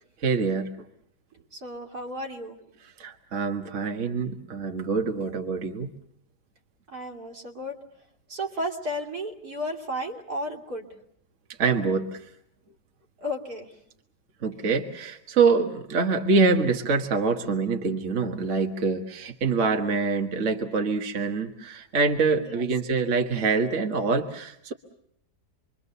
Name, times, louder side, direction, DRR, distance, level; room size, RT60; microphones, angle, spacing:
voice 1, 0.2-0.7 3.0-5.9 11.6-12.2 14.4-24.7, right 4 dB, 50° right, 4 dB, 1.7 m, -25 dB
voice 2, 1.5-2.6 6.9-7.8 8.3-10.9 13.2-13.7 22.4-22.7, equal, 65° right, 2 dB, 3.1 m, -33 dB
27.5 x 23.0 x 6.8 m, 0.70 s
omnidirectional pair, 1.8 m